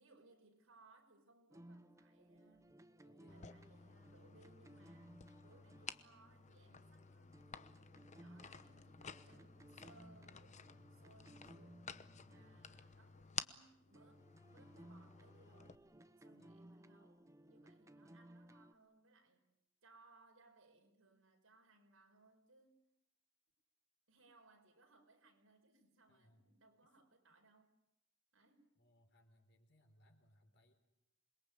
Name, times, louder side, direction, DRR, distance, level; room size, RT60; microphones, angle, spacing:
voice 1, 0.0-2.8 3.3-7.4 8.1-10.6 10.9-14.2 14.5-15.8 16.2-19.5 19.8-22.8 24.1-27.7 28.3-28.7, right 3 dB, 85° right, 5.4 m, -68 dB
sound 1, 1.5-13.6 13.9-18.7, right 1 dB, 15° right, 1.0 m, -61 dB
voice 2, 3.0-3.5 12.3-12.5 16.4-16.6 26.1-26.5 28.8-30.7, equal, 60° left, 4.1 m, -71 dB
sound 2, 3.3-15.8, left 7 dB, 35° left, 0.9 m, -53 dB
27.5 x 22.0 x 8.2 m
head